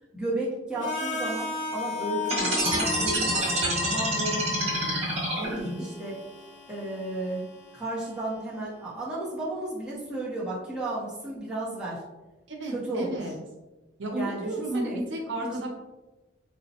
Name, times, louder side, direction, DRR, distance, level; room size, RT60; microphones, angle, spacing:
voice 1, 0.1-5.0 5.4-6.2 6.7-7.5 7.7-12.0 12.7-13.3 14.1-15.0, right 1 dB, 5° right, -8 dB, 0.7 m, -33 dB
Harmonica, 0.8-8.7, left 4 dB, 65° left, 0.7 m, -37 dB
sound 1, 2.2-5.8, right 1 dB, 30° right, 0.9 m, -27 dB
voice 2, 12.5-13.3 14.0-15.7, right 1 dB, 65° right, -1 dB, 0.6 m, -32 dB
4.0 x 2.1 x 2.7 m, 1.1 s
head